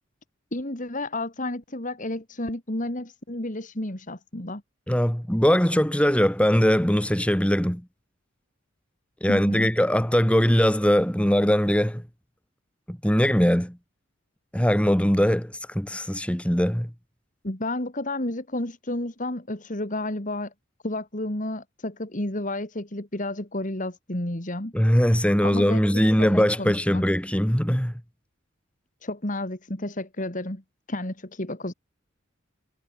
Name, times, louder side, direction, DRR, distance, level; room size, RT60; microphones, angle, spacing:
voice 1, 0.5-4.6 9.3-9.7 17.4-20.5 20.8-24.7 25.4-27.0 29.0-30.6 30.9-31.7, left 1 dB, 40° left, 2.6 m, -31 dB
voice 2, 4.9-7.8 9.2-12.0 12.9-13.8 14.5-16.9 24.7-27.9, equal, 5° left, 2.3 m, -21 dB
head